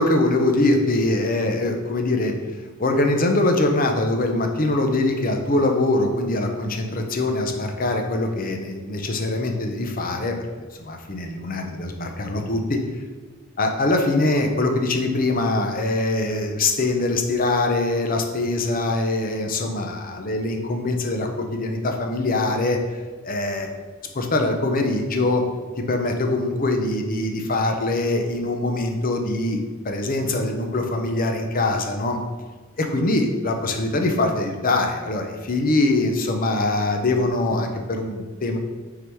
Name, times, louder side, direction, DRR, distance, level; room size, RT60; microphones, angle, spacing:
voice 1, 0.0-2.3 2.8-12.8 13.6-22.8 23.2-23.7 24.1-25.4 25.9-29.6 29.8-32.2 32.8-38.6, left 2 dB, 45° left, 4 dB, 0.8 m, -23 dB
6.2 x 3.9 x 4.6 m, 1.3 s
head